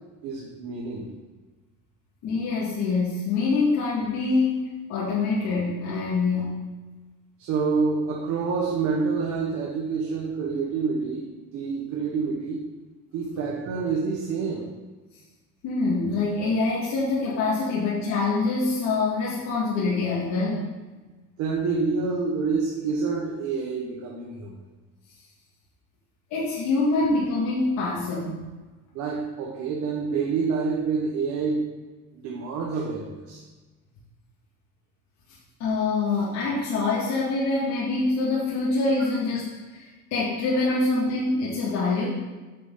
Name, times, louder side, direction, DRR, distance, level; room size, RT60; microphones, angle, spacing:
voice 1, 0.2-1.1 7.4-12.6 13.1-14.7 21.4-24.6 28.9-31.7 32.1-33.4, right 4 dB, 75° right, -2 dB, 1.5 m, -27 dB
voice 2, 2.2-6.5 15.6-20.6 26.3-28.3 35.6-42.1, left 3 dB, 65° left, -7 dB, 2.2 m, -25 dB
8.4 x 7.1 x 3.9 m, 1.2 s
cardioid pair, 130°, 29 cm